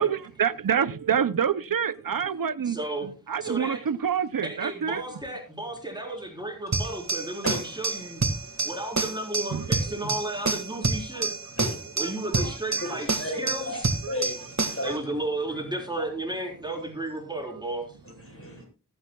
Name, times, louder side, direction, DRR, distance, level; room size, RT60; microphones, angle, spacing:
voice 1, 0.0-5.0 9.5-9.6 11.1-11.3 12.0-12.1 12.4-12.9 14.0-14.2 14.9-15.0 18.4-18.6, right 7 dB, 90° right, 0.6 m, -28 dB
voice 2, 2.7-3.1 3.4-3.8 4.4-11.3 12.0-13.9 14.8-18.0, right 2 dB, 15° right, 4.0 m, -33 dB
sound 1, 6.7-14.9, right 3 dB, 55° right, 1.8 m, -29 dB
voice 3, 7.4-7.8 8.4-8.7 10.0-10.1 11.5-12.0 12.3-15.1 15.5-15.6 18.0-18.7, left 1 dB, 40° left, 7.7 m, -35 dB
20.5 x 9.7 x 2.3 m
wide cardioid pair, 55°, 33 cm